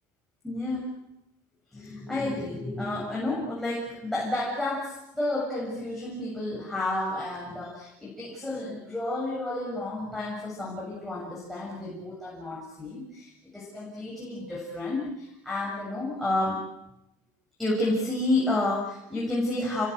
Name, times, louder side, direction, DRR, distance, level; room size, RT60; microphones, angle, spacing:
voice 1, 0.4-0.9 1.7-16.6 17.6-19.9, left 2 dB, ahead, -4 dB, 7.2 m, -30 dB
30.0 x 22.5 x 8.0 m, 0.89 s
cardioid pair, 155°, 8 cm